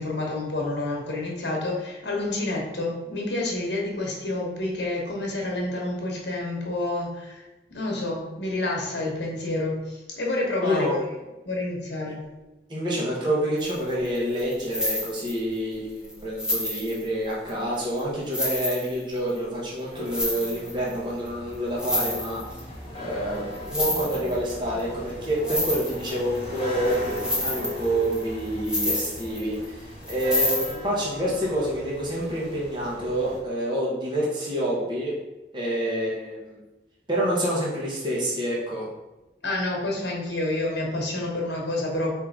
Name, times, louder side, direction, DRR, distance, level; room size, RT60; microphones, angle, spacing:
voice 1, 0.0-7.4 7.7-12.2 39.4-42.1, left 2 dB, 80° left, -1 dB, 1.1 m, -29 dB
voice 2, 10.6-10.9 12.7-22.4 22.9-35.2 35.5-36.6 37.1-38.9, right 1 dB, 25° right, -5 dB, 0.9 m, -27 dB
sound 1, 13.6-13.8 14.0-15.6 16.0-16.1 16.4-17.5 18.0-18.1 18.3-19.4 20.0-20.9 21.3-21.4 21.5-22.6 23.5-24.5 24.8-24.9 25.2-26.6 26.9-29.6 30.0-30.7, left 1 dB, 5° right, 0.7 m, -28 dB
sound 2, 19.9-33.4, left 1 dB, 30° left, 1.2 m, -38 dB
4.6 x 2.8 x 3.6 m, 1.0 s
head